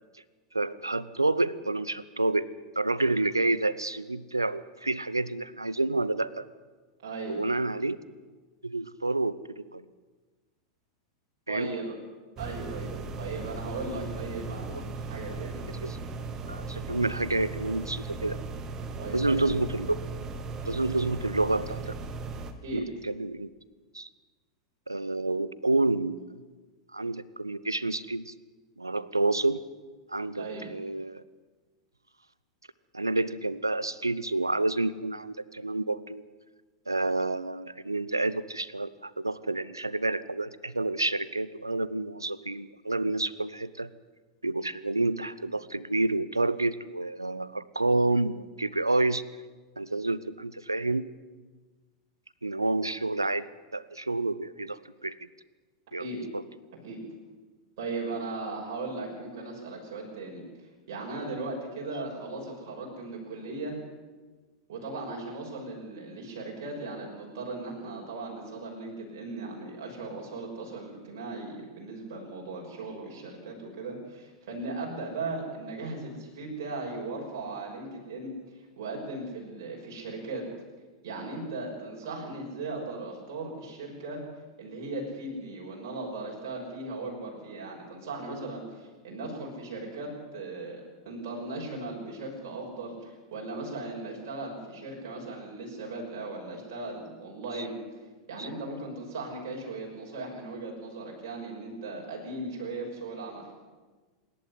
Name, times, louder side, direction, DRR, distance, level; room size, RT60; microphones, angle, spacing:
voice 1, 0.5-2.4 2.8-6.5 7.3-8.0 8.6-9.8 11.5-11.7 14.7-14.8 15.8-16.0 16.5-18.4 19.1-20.0 20.6-21.9 22.7-23.5 23.9-24.1 24.9-26.3 26.9-28.3 28.8-29.6 30.1-31.2 32.9-36.2 36.9-43.9 44.4-49.2 49.8-51.1 52.4-53.5 53.7-55.1 55.9-56.1 56.3-56.4 97.5-97.7 98.4-98.5, right 2 dB, 85° right, 18 dB, 0.7 m, -29 dB
voice 2, 7.0-7.4 11.5-11.9 12.4-15.6 19.0-19.4 22.6-22.8 30.4-30.7 56.0-56.2 56.7-57.0 57.8-63.8 64.7-78.3 78.8-80.4 81.0-84.2 84.6-97.7 98.3-103.4, right 2 dB, 55° right, -2 dB, 6.1 m, -37 dB
sound 1, 12.4-22.5, right 3 dB, 25° right, 1.8 m, -37 dB
26.0 x 11.0 x 9.9 m, 1.3 s
figure-of-eight pair, 90°, 2 cm